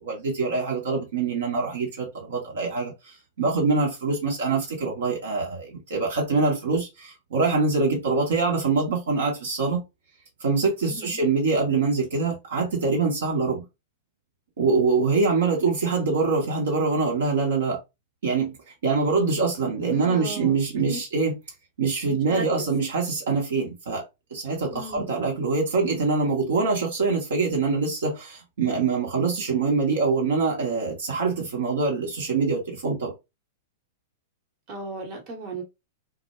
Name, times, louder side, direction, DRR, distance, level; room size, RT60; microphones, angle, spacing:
voice 1, 0.0-9.8 10.4-13.7 14.6-17.8 18.2-18.6 18.8-21.3 21.8-24.0 24.3-33.1, right 4 dB, 70° right, 0.8 m, -24 dB
voice 2, 10.9-11.2 19.9-20.6 20.9-21.0 22.0-22.7 24.7-25.1 34.7-35.6, right 2 dB, 40° right, 0.9 m, -36 dB
2.1 x 2.0 x 2.9 m
figure-of-eight pair, 100°, 0 cm